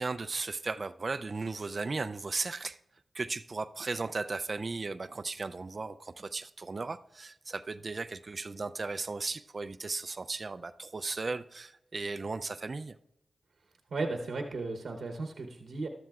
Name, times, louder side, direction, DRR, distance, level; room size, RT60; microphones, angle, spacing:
voice 1, 0.0-2.8 3.1-13.0, right 3 dB, 50° right, 0.4 m, -36 dB
voice 2, 13.9-15.9, right 3 dB, 75° right, 0.9 m, -35 dB
13.5 x 12.0 x 2.4 m
cardioid pair, 45°, 0 cm